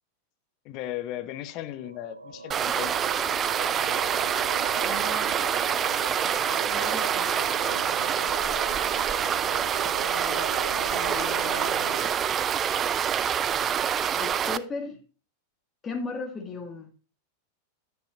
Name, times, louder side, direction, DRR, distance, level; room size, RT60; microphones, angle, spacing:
voice 1, 0.6-3.1 8.9-9.4, left 13 dB, 40° left, 0.8 m, -37 dB
sound 1, 1.3-12.1, right 3 dB, 80° right, 0.5 m, -39 dB
sound 2, 2.5-14.6, right 8 dB, 25° right, 0.4 m, -26 dB
voice 2, 4.8-5.5 6.7-7.3 10.1-11.9 14.1-15.0 15.8-16.9, left 4 dB, 20° left, 1.7 m, -37 dB
10.0 x 9.2 x 2.5 m
figure-of-eight pair, 90°, 0 cm